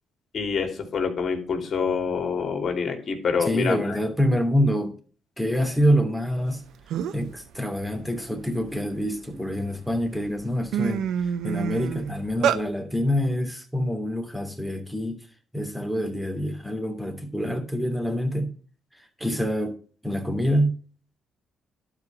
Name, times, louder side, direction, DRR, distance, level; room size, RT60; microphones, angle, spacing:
voice 1, 0.3-4.0, left 5 dB, 50° left, 3.1 m, -26 dB
voice 2, 3.4-4.9 5.4-6.6 7.1-15.2 15.5-18.5 18.9-19.8 20.0-20.8, equal, 5° right, 2.8 m, -26 dB
sound 1, 6.5-6.6 6.9-7.3 7.8-9.3 9.9-10.1 10.4-12.6, right 8 dB, 80° right, 0.9 m, -27 dB
12.0 x 4.9 x 7.6 m
cardioid pair, 80°, 0 cm